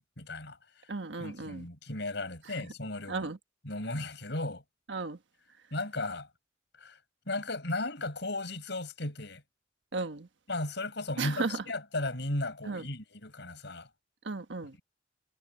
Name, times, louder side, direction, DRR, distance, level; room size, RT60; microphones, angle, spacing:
voice 1, 0.0-0.9 1.2-3.3 3.6-4.6 5.7-6.3 6.8-7.0 7.3-9.4 10.5-13.9, left 2 dB, 65° left, 7.7 m, -36 dB
voice 2, 0.9-1.7 3.1-3.4 4.9-5.2 9.9-10.3 11.2-11.6 12.7-12.8 14.2-14.7, right 3 dB, 75° right, 1.3 m, -34 dB
head